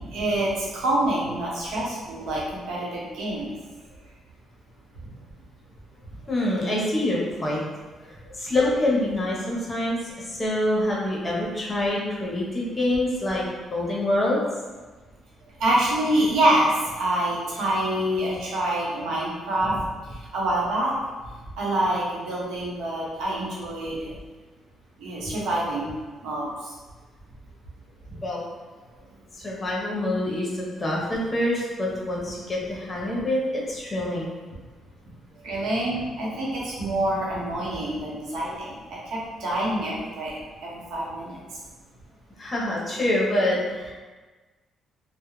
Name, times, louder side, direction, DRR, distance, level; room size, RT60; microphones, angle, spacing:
voice 1, 0.1-3.5 15.6-16.7 16.9-19.7 20.3-20.9 21.6-24.0 25.0-25.9 26.2-26.4 35.4-41.3, right 1 dB, 85° right, -6 dB, 0.8 m, -26 dB
voice 2, 6.3-7.6 8.3-10.0 10.2-13.4 13.7-14.4 28.2-28.4 29.3-34.3 42.4-43.9, left 1 dB, 25° left, -4 dB, 0.8 m, -26 dB
2.3 x 2.1 x 3.0 m, 1.3 s
cardioid pair, 90°, 0 cm